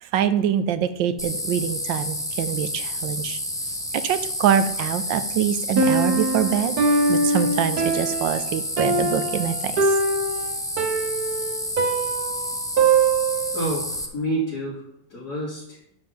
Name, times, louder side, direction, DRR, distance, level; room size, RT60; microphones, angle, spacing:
voice 1, 0.0-3.4 3.9-6.8 7.1-10.0, right 9 dB, 75° right, 12 dB, 1.3 m, -24 dB
sound 1, 1.2-14.1, left 1 dB, 5° left, 0.5 m, -30 dB
Piano, 5.8-13.6, right 3 dB, 55° right, 1.3 m, -23 dB
voice 2, 13.5-14.8 15.1-15.8, right 1 dB, 50° left, -9 dB, 3.5 m, -29 dB
11.5 x 3.9 x 7.0 m, 0.75 s
omnidirectional pair, 2.1 m